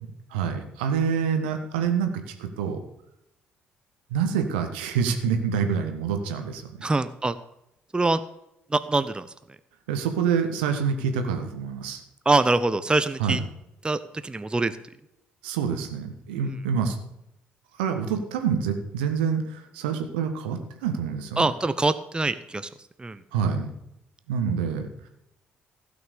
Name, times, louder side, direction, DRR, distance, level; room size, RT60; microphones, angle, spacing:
voice 1, 0.3-2.8 4.1-6.7 9.9-12.0 13.2-13.4 15.4-17.0 17.8-21.5 23.3-23.7 24.3-25.1, right 6 dB, 70° right, 6 dB, 1.4 m, -27 dB
voice 2, 6.8-7.3 7.9-8.2 8.7-9.3 12.3-13.4 13.8-14.8 21.4-22.7 23.0-23.2, right 3 dB, 15° right, 13 dB, 0.7 m, -24 dB
15.5 x 6.0 x 6.9 m, 0.84 s
figure-of-eight pair, 45°, 6 cm